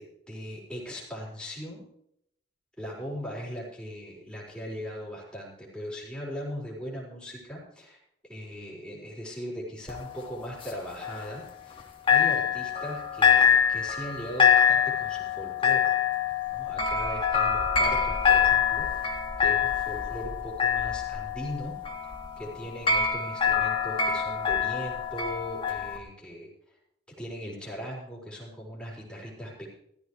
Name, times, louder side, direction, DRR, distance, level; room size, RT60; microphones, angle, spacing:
voice 1, 0.0-1.8 2.8-8.0 8.3-11.4 12.0-15.9 16.5-19.1 19.4-21.8 22.4-26.5 27.2-29.7, equal, 5° left, -5 dB, 4.7 m, -39 dB
sound 1, 9.9-11.8 12.1-26.0, left 7 dB, 30° left, 1.8 m, -25 dB
16.0 x 14.5 x 3.2 m, 0.75 s
head